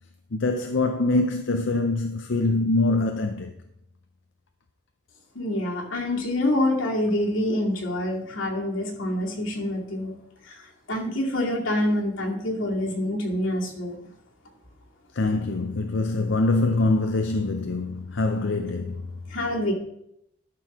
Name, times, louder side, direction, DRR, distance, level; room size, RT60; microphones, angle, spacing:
voice 1, 0.3-3.5 15.1-19.1, left 2 dB, 60° left, 0.6 m, -24 dB
voice 2, 5.3-10.1 10.9-13.9 19.3-19.7, left 1 dB, 80° left, 2.4 m, -26 dB
12.5 x 4.7 x 6.0 m
head